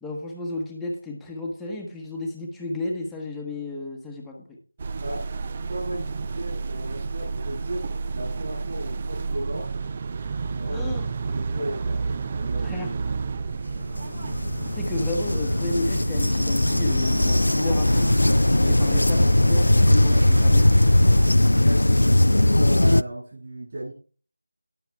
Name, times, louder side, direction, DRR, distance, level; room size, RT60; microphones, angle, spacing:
voice 1, 0.0-4.6 10.7-11.1 12.6-12.9 14.8-18.1 18.6-20.7, left 2 dB, ahead, -2 dB, 1.2 m, -32 dB
sound 1, 4.8-21.3, right 4 dB, 25° right, 0.4 m, -31 dB
voice 2, 5.6-9.7 10.6-10.9 11.3-12.0 12.3-12.8 18.9-19.0 21.1-23.9, right 1 dB, 40° right, -5 dB, 6.4 m, -35 dB
sound 2, 13.8-23.0, left 1 dB, 80° left, 0.4 m, -19 dB
18.0 x 6.6 x 3.5 m, 0.39 s
figure-of-eight pair, 170°, 0 cm